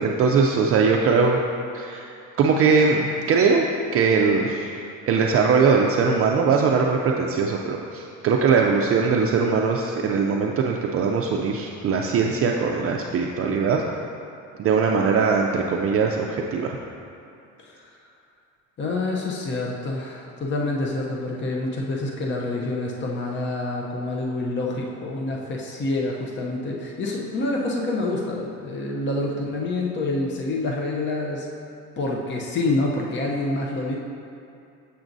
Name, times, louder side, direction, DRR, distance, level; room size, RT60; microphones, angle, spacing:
voice 1, 0.0-1.4 1.7-2.1 2.4-3.6 3.9-13.8 14.6-16.8, right 5 dB, 45° right, 0 dB, 0.4 m, -21 dB
voice 2, 18.8-31.5 32.0-34.0, left 2 dB, 35° left, -1 dB, 0.7 m, -27 dB
7.3 x 6.9 x 2.6 m, 2.6 s
cardioid pair, 125°, 33 cm